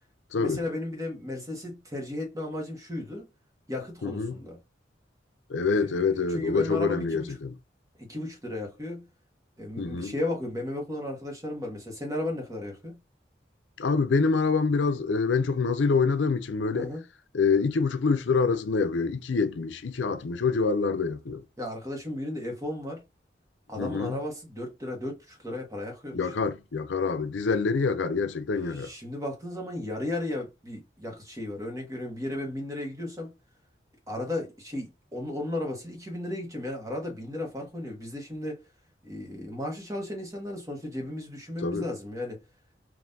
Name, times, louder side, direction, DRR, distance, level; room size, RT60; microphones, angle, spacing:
voice 1, 0.4-3.3 3.7-4.6 5.7-7.4 8.0-9.1 9.6-13.0 16.7-17.0 21.6-23.0 23.7-26.5 28.7-33.3 34.1-38.6 39.0-42.4, left 1 dB, 20° right, 1.2 m, -35 dB
voice 2, 4.0-4.4 5.5-7.5 9.8-10.1 13.8-16.9 17.3-21.4 23.8-24.2 26.1-28.9 41.6-41.9, left 4 dB, 80° left, 0.5 m, -26 dB
5.4 x 2.6 x 2.7 m
head